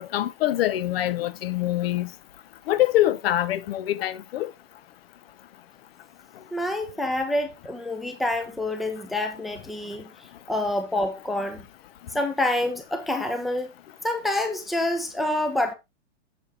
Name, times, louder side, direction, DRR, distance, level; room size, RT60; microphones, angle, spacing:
voice 1, 0.0-2.1 2.7-4.5, left 14 dB, 55° left, 0.8 m, -24 dB
voice 2, 6.5-10.1 10.5-11.6 12.1-13.7 14.0-15.7, left 1 dB, ahead, 0.7 m, -27 dB
7.1 x 6.5 x 3.5 m
hypercardioid pair, 145°, 36 cm